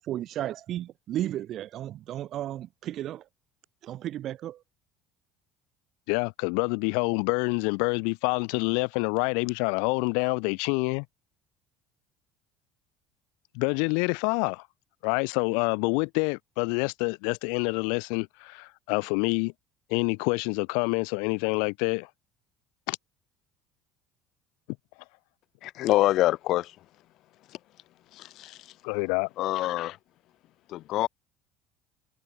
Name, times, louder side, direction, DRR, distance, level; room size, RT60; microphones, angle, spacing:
voice 1, 0.1-3.2 3.8-4.6, right 12 dB, 40° right, 1.3 m, -34 dB
voice 2, 6.1-11.1 13.5-14.6 15.0-19.5 19.9-22.1 22.9-23.0 28.8-29.3, left 40 dB or more, 90° left, 1.8 m, -27 dB
voice 3, 25.6-26.8 28.1-28.7 29.4-30.0 30.7-31.1, left 15 dB, 50° left, 3.5 m, -26 dB
cardioid pair, 165°, 0 cm